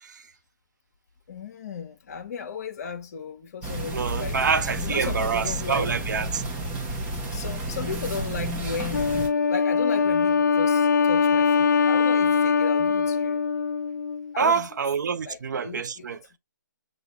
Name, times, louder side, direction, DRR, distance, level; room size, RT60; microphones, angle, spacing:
voice 1, 1.3-6.0 7.3-13.4 14.3-14.7 15.2-16.2, left 6 dB, 50° left, 1.0 m, -35 dB
sound 1, 3.6-9.3, right 1 dB, 15° right, 1.0 m, -31 dB
voice 2, 3.9-6.4 14.4-16.2, right 6 dB, 65° right, 0.6 m, -26 dB
Wind instrument woodwind instrument, 8.9-14.3, left 5 dB, 65° left, 0.4 m, -22 dB
6.0 x 2.5 x 3.4 m
hypercardioid pair, 150°, 10 cm